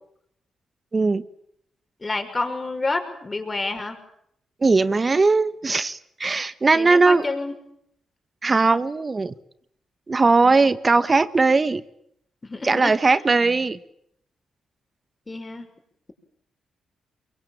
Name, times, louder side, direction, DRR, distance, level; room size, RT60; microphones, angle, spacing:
voice 1, 0.9-1.2 4.6-7.2 8.4-9.3 10.1-11.8 12.6-13.8, right 3 dB, 35° right, 14 dB, 1.3 m, -19 dB
voice 2, 2.0-4.0 6.7-7.5 12.4-13.0 15.3-15.7, left 3 dB, 30° left, 7 dB, 6.0 m, -28 dB
23.5 x 23.0 x 9.0 m, 0.73 s
supercardioid pair, 60°, 0 cm